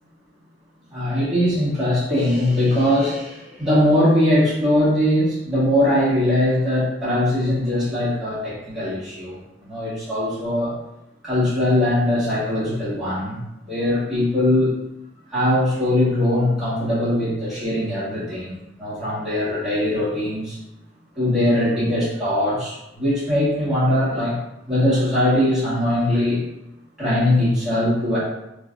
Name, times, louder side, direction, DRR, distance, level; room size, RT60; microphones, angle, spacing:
voice 1, 0.9-10.8 11.2-14.7 15.3-20.6 21.1-24.4 24.7-26.4 27.0-28.2, left 1 dB, 5° right, -12 dB, 1.5 m, -21 dB
3.3 x 3.1 x 2.5 m, 0.88 s
head